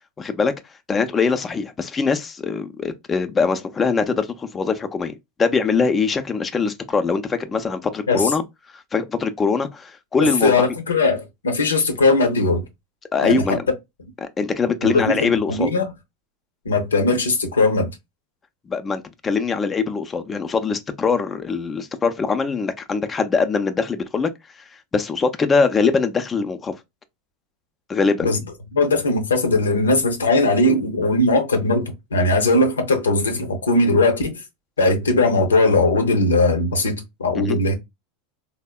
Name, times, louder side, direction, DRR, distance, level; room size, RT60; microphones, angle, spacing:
voice 1, 0.2-0.5 0.9-5.1 5.4-8.4 8.9-10.6 13.1-13.6 14.2-15.7 18.7-24.3 24.9-26.7 27.9-28.3 37.3-37.6, left 5 dB, 25° left, 0.5 m, -22 dB
voice 2, 10.4-12.6 13.2-13.6 14.8-15.8 16.6-17.9 28.2-28.4 28.7-34.4 34.8-37.7, left 2 dB, 90° left, 0.7 m, -19 dB
3.3 x 2.0 x 2.3 m
hypercardioid pair, 90°, 0 cm